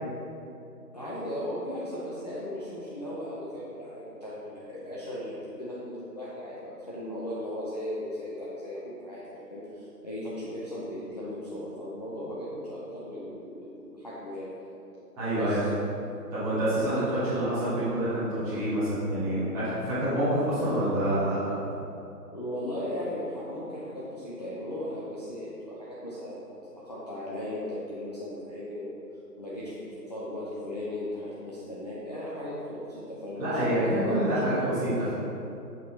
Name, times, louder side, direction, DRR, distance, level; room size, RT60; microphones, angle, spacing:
voice 1, 0.9-14.5 15.3-15.7 16.9-17.2 18.5-18.6 22.3-26.4 26.7-28.9 29.4-34.2 34.6-34.8, left 1 dB, 25° left, -9 dB, 0.7 m, -37 dB
voice 2, 15.2-15.6 16.3-21.5 33.4-35.1, right 1 dB, 5° right, -14 dB, 1.5 m, -27 dB
7.8 x 5.6 x 4.2 m, 2.8 s
figure-of-eight pair, 150°, 49 cm